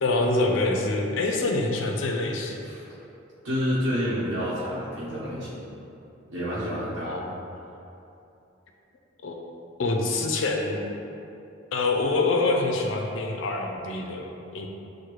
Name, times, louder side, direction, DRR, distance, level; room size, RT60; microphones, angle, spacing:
voice 1, 0.0-2.7 7.0-7.4 9.2-9.4 9.8-10.8 11.7-14.7, left 2 dB, 75° left, 2 dB, 0.5 m, -26 dB
voice 2, 3.4-5.7 6.3-7.1, equal, 65° right, -10 dB, 0.9 m, -29 dB
6.4 x 2.2 x 3.0 m, 2.8 s
head